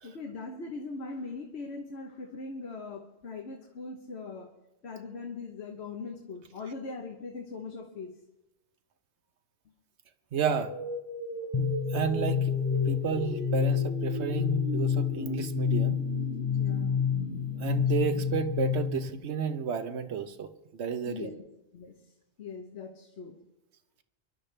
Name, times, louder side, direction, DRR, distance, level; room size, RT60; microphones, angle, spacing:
voice 1, 0.0-4.5 4.8-8.2 16.6-17.0 21.1-21.4 21.7-22.1 22.4-23.4, left 4 dB, 75° left, 3 dB, 1.3 m, -40 dB
sound 1, 10.3-19.3, right 1 dB, 35° right, 3.8 m, -39 dB
voice 2, 10.3-10.7 11.6-12.6 12.9-16.0 17.5-21.3, right 7 dB, 85° right, 10 dB, 1.1 m, -32 dB
sound 2, 11.5-19.1, left 8 dB, 35° left, 0.4 m, -29 dB
23.5 x 12.0 x 3.3 m, 0.94 s
omnidirectional pair, 1.1 m